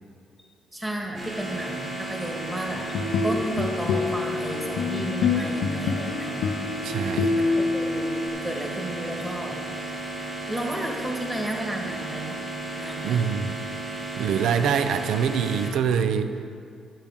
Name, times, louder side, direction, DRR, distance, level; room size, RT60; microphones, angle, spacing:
voice 1, 0.7-6.5 7.3-9.6 10.5-12.4 12.8-13.3, right 1 dB, 10° right, 1 dB, 1.7 m, -33 dB
sound 1, 1.1-15.7, right 2 dB, 45° right, 2.7 m, -34 dB
sound 2, 2.7-8.3, left 4 dB, 90° left, 0.6 m, -26 dB
voice 2, 6.8-7.4 13.0-13.6 14.2-16.3, right 7 dB, 80° right, 9 dB, 0.5 m, -24 dB
11.0 x 9.0 x 3.7 m, 2.4 s
cardioid pair, 90°, 0 cm